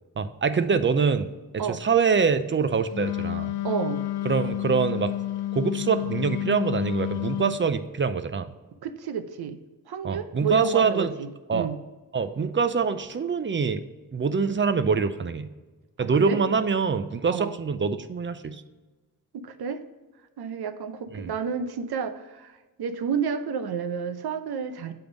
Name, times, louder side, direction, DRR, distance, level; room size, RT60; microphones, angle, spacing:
voice 1, 0.2-3.5 4.2-5.1 5.5-8.5 10.0-11.1 11.5-11.7 12.1-13.8 14.1-15.5 16.0-18.6 21.1-21.3, right 5 dB, 30° right, 12 dB, 0.5 m, -24 dB
Wind instrument woodwind instrument, 2.9-7.6, left 14 dB, 85° left, 0.5 m, -30 dB
voice 2, 3.6-4.0 8.8-9.6 9.9-11.8 16.3-16.4 17.3-17.6 19.3-19.8 20.4-22.5 22.8-24.9, right 7 dB, 80° right, 10 dB, 0.7 m, -30 dB
7.8 x 3.5 x 5.1 m, 1.2 s
wide cardioid pair, 95°, 38 cm